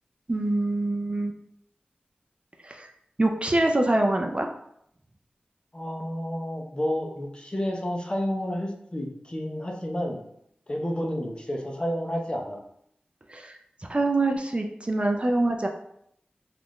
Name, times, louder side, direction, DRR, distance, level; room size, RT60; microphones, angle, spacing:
voice 1, 0.3-1.3 2.6-2.9 3.2-4.5 13.3-13.6 13.9-15.7, right 2 dB, 35° right, 2 dB, 0.4 m, -24 dB
voice 2, 5.7-10.2 10.7-12.6, equal, 30° left, 1 dB, 0.6 m, -30 dB
3.6 x 2.5 x 3.0 m, 0.73 s
wide cardioid pair, 45°, 3 cm